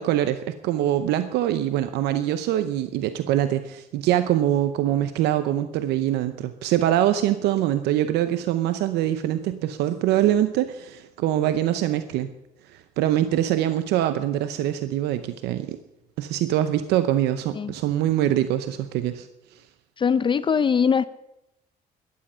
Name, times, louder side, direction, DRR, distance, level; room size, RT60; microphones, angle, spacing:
voice 1, 0.0-12.3 12.7-15.8 16.2-19.6, right 12 dB, 85° right, 11 dB, 0.7 m, -24 dB
voice 2, 20.0-21.1, left 6 dB, 30° left, 16 dB, 0.5 m, -21 dB
15.0 x 11.5 x 5.6 m, 0.89 s
cardioid pair, 110°, 17 cm